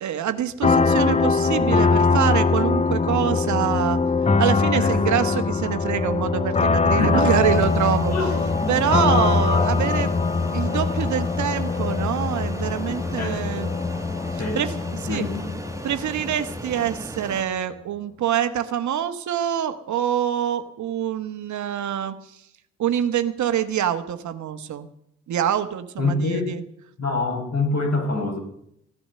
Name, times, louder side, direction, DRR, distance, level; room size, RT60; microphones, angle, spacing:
voice 1, 0.0-4.0 4.4-8.1 8.7-10.1 10.5-13.7 14.5-14.7 15.0-15.3 15.8-22.1 22.8-24.9 25.3-26.6, right 10 dB, 60° right, 10 dB, 1.2 m, -25 dB
sound 1, 0.6-17.1, left 4 dB, 20° left, 0.6 m, -22 dB
voice 2, 4.7-5.0 6.9-7.4 8.1-8.7 13.2-13.6 14.4-14.6 15.0-15.6 26.0-26.6 27.0-28.4, left 2 dB, 50° left, 3 dB, 4.9 m, -26 dB
Fixed-wing aircraft airplane, 7.4-17.4, right 1 dB, 10° right, 1.4 m, -37 dB
16.0 x 9.9 x 6.7 m, 0.74 s
hypercardioid pair, 50°, 33 cm